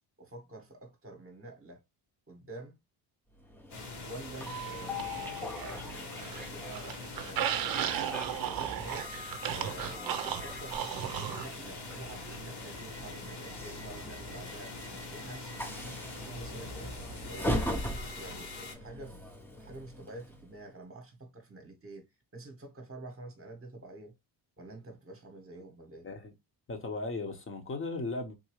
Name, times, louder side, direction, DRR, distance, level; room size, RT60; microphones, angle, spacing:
voice 1, 0.2-1.8 2.3-2.8 4.0-8.1 8.5-9.1 9.5-14.7 15.1-17.0 17.3-19.2 19.6-22.1 22.3-24.1 24.6-26.1, right 2 dB, 30° right, 1.1 m, -48 dB
Train, 3.4-20.7, left 1 dB, 5° left, 0.7 m, -41 dB
sound 1, 3.7-18.7, left 3 dB, 55° left, 1.7 m, -44 dB
sound 2, 4.5-5.8 6.1-11.5, right 10 dB, 50° right, 0.6 m, -35 dB
voice 2, 26.7-28.3, left 3 dB, 25° left, 1.0 m, -37 dB
3.8 x 2.7 x 3.0 m
cardioid pair, 95°, 46 cm